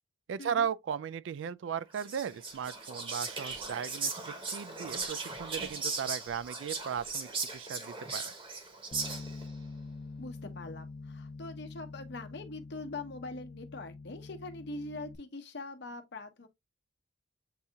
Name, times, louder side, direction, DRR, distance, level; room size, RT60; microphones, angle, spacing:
voice 1, 0.3-8.3, right 7 dB, 70° right, 0.3 m, -36 dB
Whispering, 1.9-9.5, right 4 dB, 25° right, 0.9 m, -38 dB
Bass guitar, 8.9-15.2, left 3 dB, 35° left, 0.4 m, -45 dB
voice 2, 10.2-16.5, left 2 dB, 60° left, 0.9 m, -43 dB
7.8 x 2.7 x 2.3 m
head